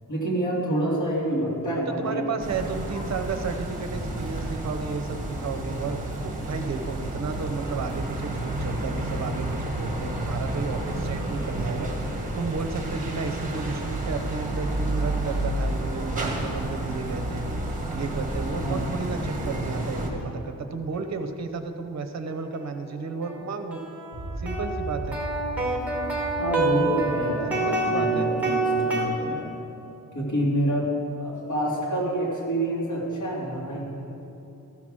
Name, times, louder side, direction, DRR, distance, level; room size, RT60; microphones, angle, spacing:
voice 1, 0.1-2.2 18.6-18.8 26.4-29.4 30.1-30.9 31.2-34.1, right 1 dB, 55° left, -5 dB, 2.9 m, -27 dB
voice 2, 2.0-11.9 12.4-17.4 17.9-23.8 24.4-25.2 27.5-28.3, right 4 dB, 50° right, 8 dB, 0.8 m, -33 dB
sound 1, 2.4-20.1, right 1 dB, 20° right, 1.5 m, -30 dB
sound 2, 22.5-22.6 23.2-29.1, right 2 dB, 5° right, 1.5 m, -27 dB
sound 3, 24.1-28.4, right 1 dB, 25° left, 2.1 m, -37 dB
14.5 x 5.8 x 6.3 m, 2.9 s
wide cardioid pair, 150°, 36 cm